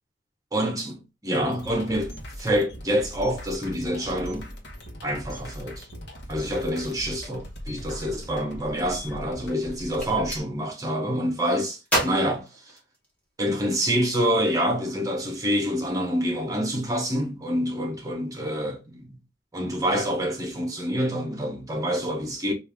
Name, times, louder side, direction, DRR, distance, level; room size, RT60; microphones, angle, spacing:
voice 1, 0.5-4.5 5.0-5.9 6.3-12.5 13.4-19.2 19.5-22.5, equal, 20° right, 1.0 m, -27 dB
sound 1, 1.5-10.4, equal, 65° left, 1.0 m, -40 dB
Gunshot gunfire, 9.9-10.4 11.8-13.3, right 1 dB, 5° left, 1.3 m, -29 dB
3.3 x 2.6 x 3.4 m
head